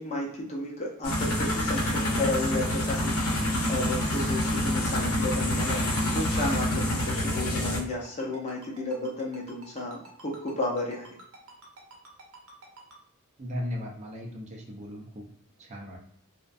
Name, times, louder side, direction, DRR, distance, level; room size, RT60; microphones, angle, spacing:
voice 1, 0.0-5.8 6.1-11.1, left 2 dB, 30° left, -2 dB, 0.5 m, -33 dB
sound 1, 1.0-7.8, left 1 dB, 70° left, 0.7 m, -27 dB
Ringtone, 6.2-13.0, right 3 dB, 70° right, 0.7 m, -49 dB
voice 2, 13.4-15.3 15.6-16.0, left 1 dB, 30° right, -1 dB, 0.4 m, -37 dB
2.4 x 2.1 x 2.5 m, 0.69 s
head